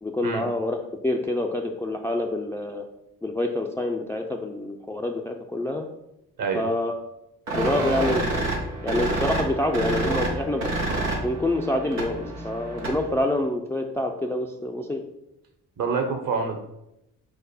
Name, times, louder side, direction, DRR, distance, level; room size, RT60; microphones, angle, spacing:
voice 1, 0.0-2.8 3.2-5.9 6.5-7.0 7.5-8.4 8.8-10.6 11.0-15.0, left 1 dB, 5° left, 3 dB, 0.4 m, -27 dB
sound 1, 7.5-13.2, right 2 dB, 90° right, 0.8 m, -28 dB
voice 2, 15.8-16.6, right 5 dB, 50° right, 5 dB, 1.0 m, -26 dB
4.8 x 2.1 x 4.8 m, 0.85 s
hypercardioid pair, 40°, 46 cm